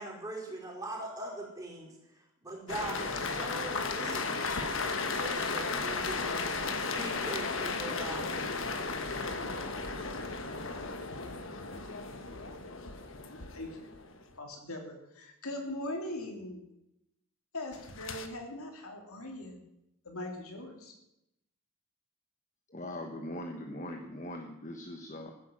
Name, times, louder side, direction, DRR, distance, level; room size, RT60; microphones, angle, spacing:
voice 1, 0.0-1.9 2.4-4.3 5.2-6.5 6.8-8.3, right 1 dB, 15° right, -3 dB, 4.8 m, -41 dB
sound 1, 2.7-14.2 17.7-18.3, left 4 dB, 60° left, 1.4 m, -35 dB
voice 2, 13.1-13.9 14.4-16.6 17.5-19.6 20.0-20.9, left 1 dB, 80° left, 2 dB, 3.3 m, -41 dB
voice 3, 22.7-25.3, left 1 dB, 35° left, 3 dB, 1.3 m, -41 dB
15.0 x 10.5 x 7.5 m, 0.85 s
head